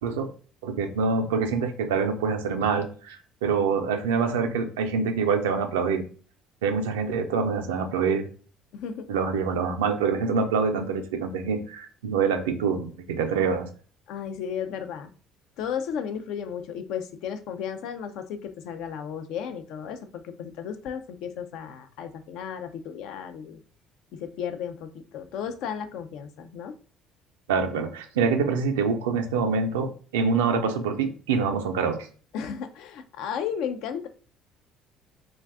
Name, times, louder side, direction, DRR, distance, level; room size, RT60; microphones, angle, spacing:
voice 1, 0.6-6.0 6.6-8.3 9.1-13.7 27.5-32.0, right 5 dB, 85° right, 6 dB, 0.4 m, -25 dB
voice 2, 8.7-9.1 14.1-15.1 15.6-23.6 24.1-26.8 32.3-34.1, left 8 dB, 70° left, 8 dB, 0.4 m, -34 dB
2.5 x 2.2 x 3.4 m, 0.40 s
hypercardioid pair, 60°, 0 cm